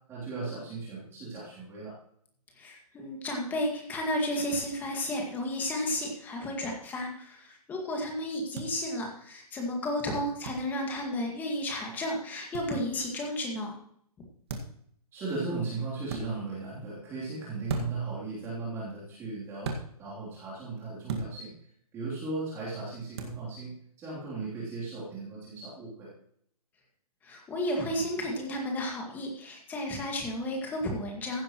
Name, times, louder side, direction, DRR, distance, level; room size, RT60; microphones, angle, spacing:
voice 1, 0.1-1.9 15.1-19.7 20.0-21.5 21.9-26.1, right 3 dB, 15° right, -8 dB, 3.3 m, -37 dB
voice 2, 2.6-13.7 27.2-31.4, left 1 dB, 10° left, 1 dB, 1.9 m, -32 dB
sound 1, 8.5-8.7 10.4-10.6 12.5-12.7 14.5-14.8 16.1-16.2 17.7-18.1 19.6-19.8 21.1-21.3 23.2-23.4, right 4 dB, 40° right, 1.9 m, -34 dB
15.5 x 10.5 x 3.1 m, 0.65 s
hypercardioid pair, 160°, 20 cm